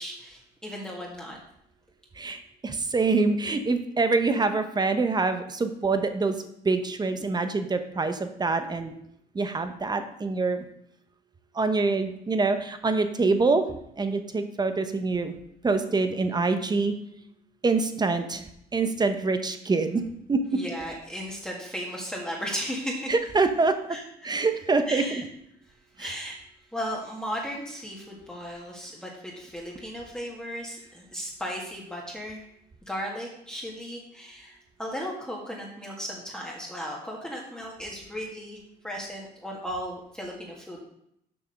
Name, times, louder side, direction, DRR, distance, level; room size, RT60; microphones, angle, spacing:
voice 1, 0.0-1.4 20.5-23.1 23.9-24.4 24.9-25.2 26.0-26.4 26.7-32.4 32.9-40.8, equal, 5° left, -3 dB, 1.9 m, -36 dB
voice 2, 2.2-6.3 6.6-8.9 9.3-10.6 11.5-13.7 14.0-15.3 15.6-16.9 17.6-18.4 18.7-20.0 20.3-20.6 23.1-23.7 24.2-25.2 26.0-26.1, right 3 dB, 25° right, 8 dB, 1.0 m, -25 dB
7.2 x 5.7 x 6.5 m, 0.74 s
cardioid pair, 105°, 17 cm